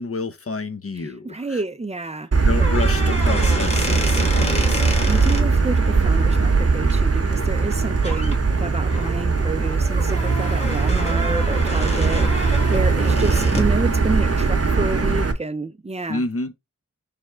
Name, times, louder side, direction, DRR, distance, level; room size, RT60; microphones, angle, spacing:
voice 1, 0.0-1.6 2.4-4.8 16.1-16.5, left 3 dB, 40° left, 0.6 m, -29 dB
voice 2, 1.0-2.5 5.1-16.2, right 3 dB, 20° right, 0.5 m, -29 dB
Motor vehicle (road), 2.3-15.3, right 4 dB, 45° right, 0.8 m, -20 dB
sound 1, 2.6-5.4 7.6-7.7 8.0-8.4 8.9-13.8, left 1 dB, 20° left, 1.2 m, -30 dB
sound 2, 4.2-9.1, left 2 dB, 65° left, 1.2 m, -42 dB
3.5 x 3.3 x 4.3 m
wide cardioid pair, 50°, 34 cm